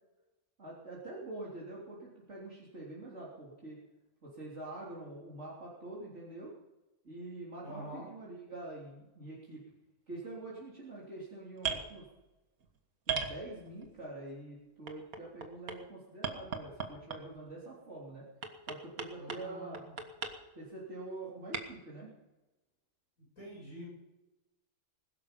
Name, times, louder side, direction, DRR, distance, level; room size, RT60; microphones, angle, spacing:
voice 1, 0.6-3.8 4.2-6.5 7.0-9.6 10.1-12.1 13.1-18.2 18.6-19.9 20.5-22.1, right 2 dB, 50° right, -6 dB, 3.9 m, -45 dB
voice 2, 7.6-8.1 19.1-20.0 23.2-23.9, equal, 70° left, -5 dB, 8.5 m, -46 dB
sound 1, 11.6-11.9 13.1-13.9 14.9-15.8 16.2-17.4 18.4-19.4 19.7-20.3 21.5-21.6, right 6 dB, 75° right, 2.0 m, -36 dB
21.0 x 12.5 x 5.4 m, 1.1 s
omnidirectional pair, 1.5 m